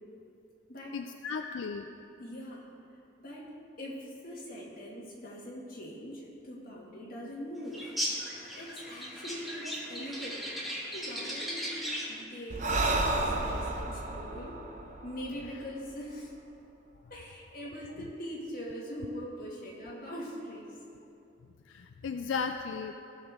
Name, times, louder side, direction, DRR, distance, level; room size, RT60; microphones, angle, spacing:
voice 1, 0.9-1.8 21.7-22.9, left 5 dB, 80° left, 6 dB, 0.4 m, -35 dB
voice 2, 1.4-2.7 3.2-3.5 3.8-7.9 8.6-10.4 10.9-14.6 15.0-16.3 17.1-20.8, equal, 45° left, -5 dB, 2.0 m, -42 dB
sound 1, 7.7-12.2, equal, ahead, 1.2 m, -37 dB
Breathing, 12.5-16.0, right 2 dB, 40° right, 0.7 m, -32 dB
16.5 x 6.5 x 3.6 m, 2.7 s
head